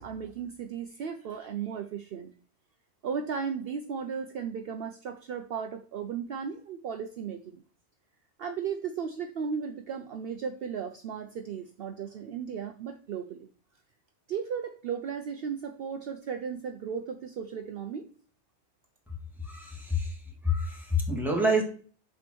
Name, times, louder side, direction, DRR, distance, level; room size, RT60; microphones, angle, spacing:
voice 1, 0.0-2.3 3.0-7.6 8.4-13.5 14.3-18.1, right 7 dB, 65° right, 7 dB, 0.7 m, -35 dB
voice 2, 19.4-21.6, left 1 dB, ahead, -2 dB, 1.8 m, -28 dB
5.0 x 4.6 x 6.1 m, 0.43 s
omnidirectional pair, 1.2 m